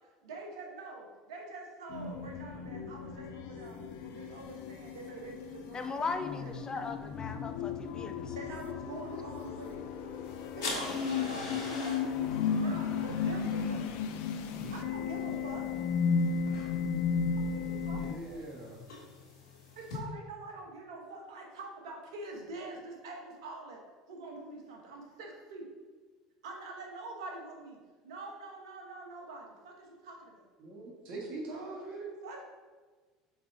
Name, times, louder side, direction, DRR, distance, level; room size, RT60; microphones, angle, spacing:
voice 1, 0.0-6.5 8.3-9.8 10.5-13.9 14.7-15.7 17.5-18.4 19.7-23.8 24.1-25.7 26.4-30.4 32.2-32.4, right 2 dB, 80° right, 1 dB, 1.3 m, -45 dB
sound 1, 1.9-18.1, left 6 dB, 65° left, 0.6 m, -34 dB
voice 2, 5.7-8.3, left 4 dB, 25° left, 8 dB, 0.7 m, -38 dB
sound 2, 10.2-20.0, left 2 dB, 80° left, 1.6 m, -45 dB
voice 3, 18.0-18.8 30.6-32.1, right 2 dB, 55° right, -2 dB, 1.6 m, -42 dB
5.5 x 4.7 x 3.6 m, 1.4 s
hypercardioid pair, 80°, 3 cm